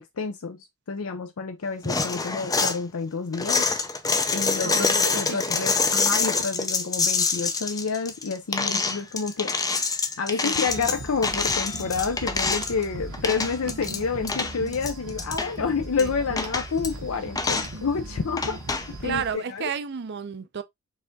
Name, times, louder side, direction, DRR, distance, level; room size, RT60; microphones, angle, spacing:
voice 1, 0.0-3.7 4.3-9.5 10.2-19.7, left 5 dB, 65° left, 0.5 m, -29 dB
sound 1, 1.8-2.8 3.3-12.8 13.1-14.0 14.2-15.5 16.0-16.1 16.4-16.9 17.3-17.7 18.4-18.9, left 4 dB, 15° left, 0.4 m, -26 dB
voice 2, 4.6-5.6 10.4-10.6 16.0-16.1 19.0-20.6, right 7 dB, 50° right, 0.5 m, -32 dB
sound 2, 10.7-19.3, right 2 dB, 80° right, 1.2 m, -38 dB
4.8 x 3.4 x 2.6 m
head